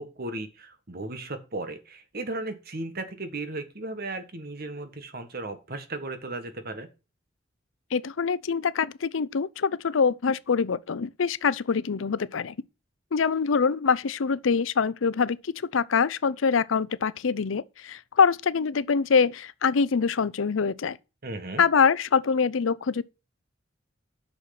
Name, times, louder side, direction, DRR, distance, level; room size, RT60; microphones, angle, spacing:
voice 1, 0.0-6.9 21.2-21.6, right 2 dB, 50° right, 1.6 m, -35 dB
voice 2, 7.9-12.6 13.1-21.0 21.6-23.0, left 5 dB, 85° left, 0.6 m, -24 dB
8.6 x 6.3 x 5.9 m
head